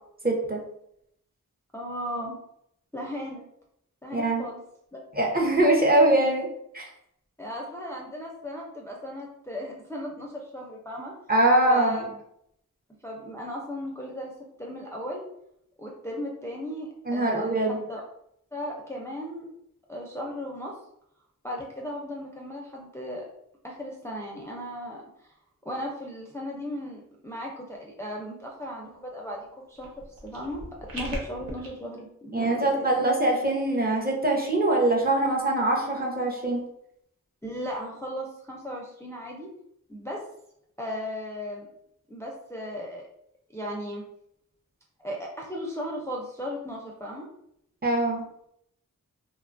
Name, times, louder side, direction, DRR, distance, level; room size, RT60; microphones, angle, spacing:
voice 1, 0.2-0.6 4.1-4.5 5.1-6.5 6.7-6.8 11.3-12.0 17.1-17.8 31.0-31.1 32.3-36.6 47.8-48.2, right 1 dB, 30° right, -1 dB, 0.7 m, -23 dB
voice 2, 1.7-2.4 2.9-3.4 4.0-4.6 4.9-5.0 7.4-11.1 11.7-12.1 13.0-14.3 14.6-15.2 15.8-18.0 18.5-19.5 19.9-20.7 21.4-23.2 23.6-25.3 25.7-33.1 37.4-39.5 39.9-40.2 40.8-41.7 42.1-43.0 43.5-44.0 45.0-47.3, equal, 10° left, -2 dB, 0.5 m, -36 dB
sound 1, 29.7-31.7, right 1 dB, 85° right, 0.7 m, -39 dB
2.8 x 2.2 x 2.5 m, 0.75 s
cardioid pair, 45°, 33 cm